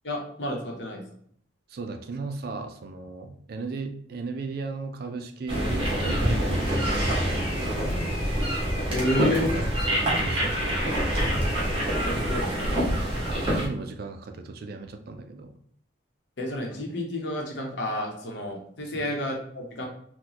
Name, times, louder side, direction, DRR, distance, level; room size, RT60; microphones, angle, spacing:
voice 1, 0.0-1.0 8.9-9.5 12.0-12.9 16.4-19.9, left 1 dB, 70° left, 1 dB, 0.8 m, -30 dB
voice 2, 1.7-7.7 8.9-11.4 13.3-15.5 18.8-19.1, right 4 dB, 55° right, 6 dB, 0.4 m, -37 dB
sound 1, 5.5-13.7, equal, 30° right, 1.0 m, -26 dB
3.9 x 2.2 x 2.9 m, 0.64 s
head